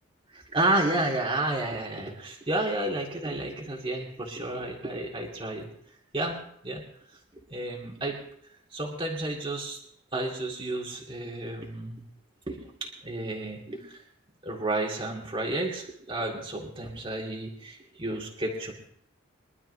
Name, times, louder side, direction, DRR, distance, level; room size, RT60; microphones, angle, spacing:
voice 1, 0.3-5.7 6.1-6.4 6.6-6.8 7.5-8.2 8.7-9.8 10.1-12.0 12.5-14.0 14.4-18.7, right 2 dB, 25° right, -1 dB, 2.3 m, -31 dB
23.5 x 12.0 x 2.8 m, 0.67 s
head